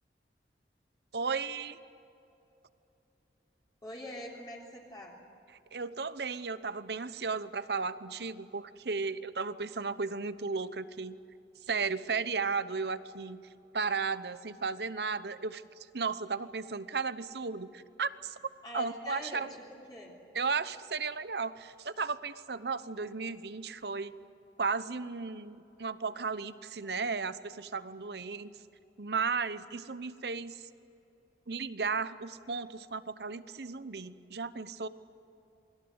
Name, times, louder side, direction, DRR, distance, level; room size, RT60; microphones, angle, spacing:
voice 1, 1.1-1.8 5.7-11.2 11.7-13.4 13.7-15.6 15.9-18.4 18.7-19.5 20.3-24.1 24.6-28.5 29.0-30.6 31.5-34.9, right 4 dB, 65° right, 14 dB, 0.9 m, -35 dB
voice 2, 3.8-5.2 18.6-19.4 19.9-20.2, equal, 25° left, -3 dB, 3.4 m, -43 dB
28.0 x 21.5 x 8.0 m, 2.8 s
head